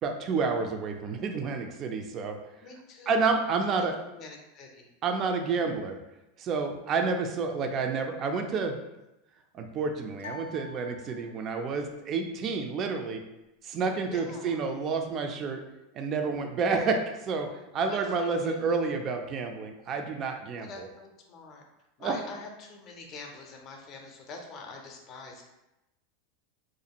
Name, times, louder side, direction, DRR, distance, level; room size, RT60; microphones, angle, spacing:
voice 1, 0.0-2.4 3.1-4.0 5.0-6.0 6.4-8.8 9.5-13.2 13.6-15.6 15.9-20.9 22.0-22.2, right 4 dB, 35° right, 5 dB, 0.3 m, -29 dB
voice 2, 2.6-3.3 3.8-4.9 7.7-7.8 14.1-14.7 17.9-18.8 20.6-21.6 22.0-25.5, left 3 dB, 40° left, 2 dB, 0.5 m, -45 dB
sound 1, 10.2-11.7, left 3 dB, 90° left, 0.3 m, -46 dB
2.5 x 2.3 x 2.8 m, 0.95 s
supercardioid pair, 130°, 0 cm